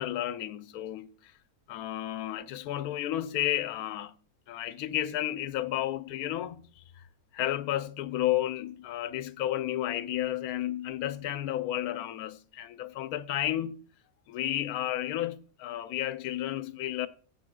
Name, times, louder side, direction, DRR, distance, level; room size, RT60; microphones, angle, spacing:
voice 1, 0.0-1.3 1.7-4.1 4.5-6.6 7.3-13.8 14.3-17.1, left 13 dB, 80° left, 1.1 m, -32 dB
18.0 x 7.8 x 2.2 m
omnidirectional pair, 1.6 m